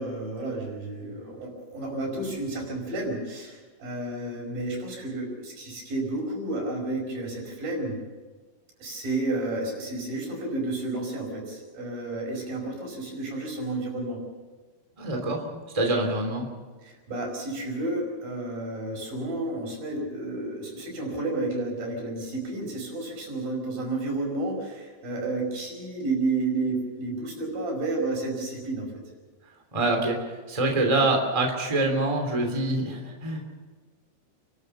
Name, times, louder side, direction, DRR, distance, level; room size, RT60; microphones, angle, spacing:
voice 1, 0.0-8.0 8.8-14.2 16.8-28.9, right 2 dB, 75° right, 0 dB, 7.1 m, -31 dB
voice 2, 15.0-15.4 15.7-16.4 29.7-33.4, right 2 dB, 10° right, 2 dB, 2.7 m, -25 dB
29.5 x 13.0 x 6.9 m, 1.4 s
omnidirectional pair, 4.1 m